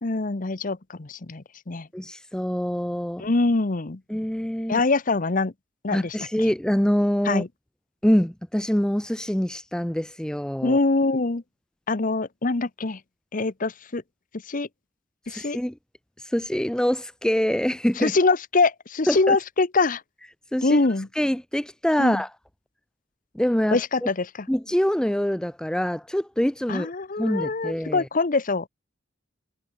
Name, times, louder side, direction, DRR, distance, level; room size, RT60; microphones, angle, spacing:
voice 1, 0.0-1.9 3.2-4.0 4.7-5.5 5.8-6.5 7.2-7.5 10.6-11.4 11.9-13.0 13.3-14.0 14.5-14.7 15.3-15.6 18.0-20.0 20.6-21.1 22.0-22.2 23.7-24.5 26.7-28.7, left 3 dB, 45° left, 0.9 m, -24 dB
voice 2, 1.9-3.3 4.1-4.8 5.9-7.4 8.0-10.8 15.3-15.7 16.2-18.1 19.1-19.4 20.5-20.8 21.2-22.3 23.3-23.8 24.5-26.9 27.2-28.1, equal, 5° left, 0.5 m, -25 dB
head